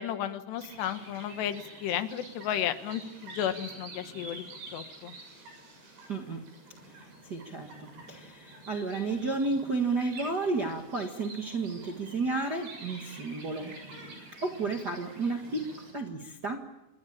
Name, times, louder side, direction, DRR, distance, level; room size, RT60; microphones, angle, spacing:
voice 1, 0.0-4.4 4.7-5.1, left 10 dB, 85° left, 9 dB, 3.6 m, -33 dB
sound 1, 0.6-15.9, right 2 dB, 80° right, 9.3 m, -48 dB
voice 2, 6.1-6.4 7.3-7.7 8.1-13.7 14.4-16.6, right 3 dB, 50° right, 2 dB, 1.2 m, -32 dB
27.0 x 21.5 x 8.7 m, 0.94 s
omnidirectional pair, 4.8 m